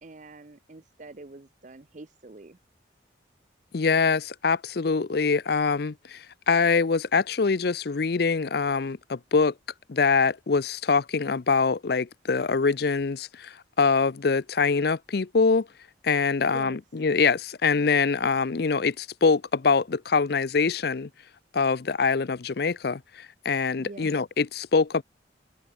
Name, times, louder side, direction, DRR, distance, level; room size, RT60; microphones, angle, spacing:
voice 1, 0.0-2.6 16.4-16.8 23.8-24.2, right 2 dB, 40° right, 0.7 m, -45 dB
voice 2, 3.7-9.5 9.9-15.7 16.0-21.1 21.5-25.0, left 4 dB, 55° left, 0.5 m, -24 dB
head